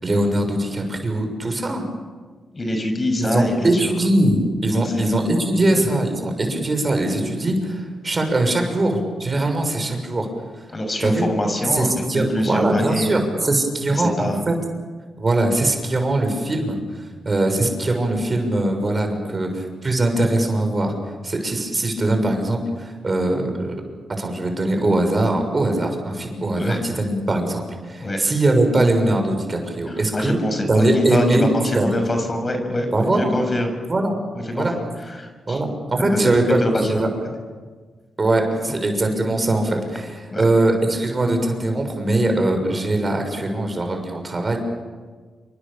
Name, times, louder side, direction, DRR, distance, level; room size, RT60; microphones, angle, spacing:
voice 1, 0.0-1.8 3.2-10.3 11.0-11.3 11.7-14.5 15.2-16.8 17.2-20.9 21.2-23.7 24.2-30.4 30.7-31.5 31.7-31.9 32.9-33.3 33.9-34.1 34.6-34.7 35.5-37.1 38.2-44.6, right 2 dB, 35° right, 4 dB, 6.6 m, -21 dB
voice 2, 2.5-3.9 4.7-5.1 5.5-5.6 5.9-6.0 10.7-13.2 13.9-14.4 26.6-26.8 28.0-28.2 29.9-33.7 34.5-35.6 36.6-37.0 38.6-38.7 40.3-40.4, left 1 dB, 30° left, 5 dB, 6.6 m, -25 dB
28.5 x 24.5 x 7.3 m, 1.5 s
cardioid pair, 70°, 0 cm